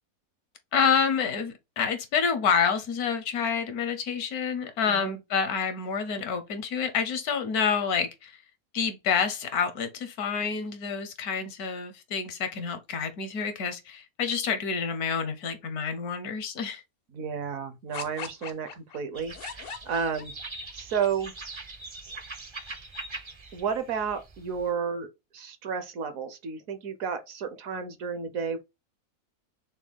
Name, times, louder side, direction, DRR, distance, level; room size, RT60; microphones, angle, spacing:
voice 1, 0.7-8.4 8.7-16.8, left 6 dB, 80° left, 1.4 m, -28 dB
voice 2, 17.1-20.3 20.7-21.3 23.5-28.6, right 6 dB, 70° right, 1.2 m, -32 dB
sound 1, 17.9-20.7, left 6 dB, 60° left, 0.6 m, -40 dB
sound 2, 19.1-24.7, right 3 dB, 35° right, 0.4 m, -42 dB
6.1 x 2.2 x 3.5 m
omnidirectional pair, 1.6 m